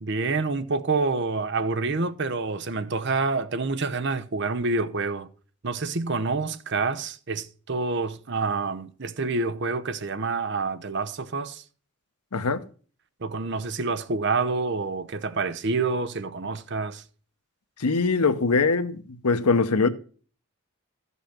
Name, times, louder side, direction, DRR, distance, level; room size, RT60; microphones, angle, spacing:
voice 1, 0.0-5.3 5.6-11.6 13.2-17.0, right 3 dB, 50° right, 0.8 m, -27 dB
voice 2, 12.3-12.6 17.8-19.9, left 4 dB, 90° left, 0.9 m, -22 dB
13.0 x 5.5 x 5.8 m
head